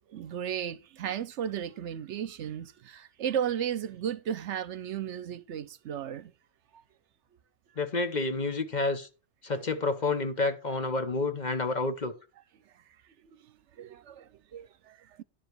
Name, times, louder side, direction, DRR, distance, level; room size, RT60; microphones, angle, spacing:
voice 1, 0.1-6.3 9.5-9.7 13.2-15.2, right 9 dB, 70° right, 0.9 m, -35 dB
voice 2, 7.8-9.1 9.4-12.1, left 3 dB, 40° left, 0.9 m, -29 dB
11.0 x 5.0 x 6.1 m
omnidirectional pair, 1.3 m